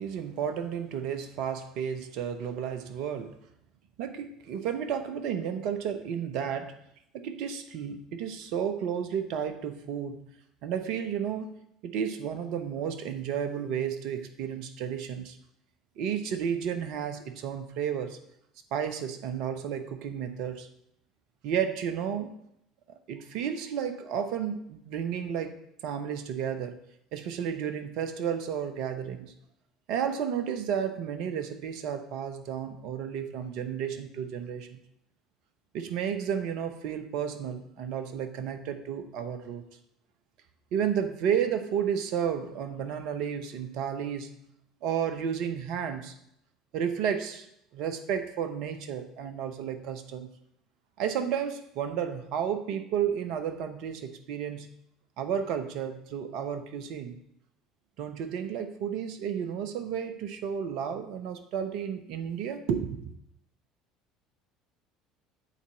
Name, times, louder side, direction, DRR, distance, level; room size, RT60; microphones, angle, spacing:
voice 1, 0.0-3.4 4.0-6.8 7.2-10.2 10.6-11.5 11.8-15.4 16.0-18.2 18.7-20.7 21.4-22.4 23.1-25.5 25.8-26.8 27.1-29.3 29.9-34.8 35.7-39.7 40.7-44.3 44.8-46.1 46.7-47.5 47.7-50.3 51.0-54.7 55.2-57.2 58.0-63.1, right 8 dB, 60° right, 8 dB, 0.7 m, -32 dB
8.4 x 4.2 x 5.7 m, 0.74 s
figure-of-eight pair, 65°, 0 cm